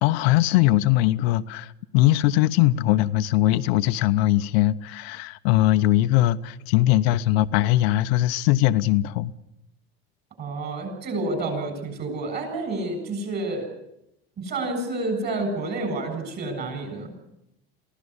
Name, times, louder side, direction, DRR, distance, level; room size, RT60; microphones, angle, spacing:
voice 1, 0.0-9.3, left 15 dB, 80° left, 0.9 m, -21 dB
voice 2, 10.4-13.7 14.4-17.1, right 2 dB, 35° right, 7.7 m, -29 dB
23.0 x 16.0 x 9.8 m
cardioid pair, 155°, 30 cm